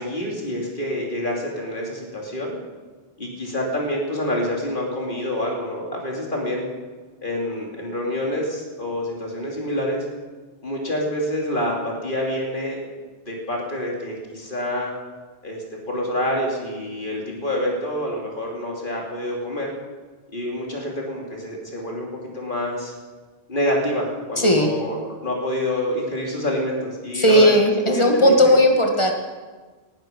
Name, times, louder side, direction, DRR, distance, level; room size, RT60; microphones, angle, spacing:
voice 1, 0.0-2.6 3.2-6.7 7.2-10.0 10.6-12.8 13.3-14.9 15.4-19.7 20.3-22.9 23.5-28.6, left 1 dB, 45° left, -1 dB, 3.1 m, -27 dB
voice 2, 24.4-24.7 27.2-29.1, equal, 25° left, 2 dB, 1.8 m, -16 dB
19.0 x 12.0 x 5.3 m, 1.4 s
omnidirectional pair, 1.2 m